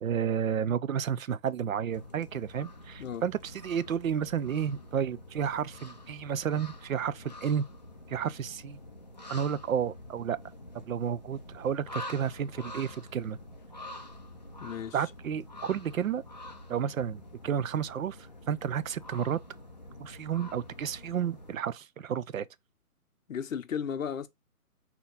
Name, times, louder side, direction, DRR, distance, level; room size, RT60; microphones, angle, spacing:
voice 1, 0.0-7.6 8.1-8.8 9.3-10.4 10.9-13.4 14.9-16.2 16.7-18.2 18.5-19.4 20.0-22.5, right 8 dB, 65° right, 0.5 m, -31 dB
sound 1, 1.9-21.6, left 1 dB, 30° left, 0.5 m, -47 dB
voice 2, 14.6-15.0 23.3-24.3, left 7 dB, 60° left, 0.8 m, -34 dB
4.2 x 2.9 x 3.9 m
hypercardioid pair, 170°, 46 cm